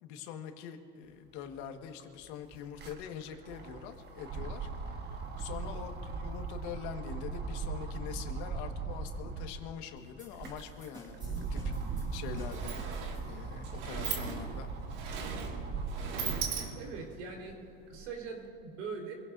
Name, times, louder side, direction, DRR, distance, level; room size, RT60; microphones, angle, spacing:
voice 1, 0.0-5.1 5.4-11.7 12.1-12.8 13.3-14.7, left 8 dB, 65° left, 5 dB, 1.7 m, -44 dB
sound 1, 1.5-1.6 1.8-9.6 10.1-16.6 17.1-18.3, right 4 dB, 30° right, 1.3 m, -39 dB
sound 2, 10.2-13.6, equal, 10° right, 4.4 m, -53 dB
Sliding door, 11.8-11.9 12.2-17.1, right 6 dB, 55° right, 2.2 m, -39 dB
voice 2, 16.7-17.6 17.9-19.1, right 5 dB, 90° right, 0 dB, 4.3 m, -41 dB
26.0 x 17.5 x 2.7 m, 2.9 s
supercardioid pair, 145°, 37 cm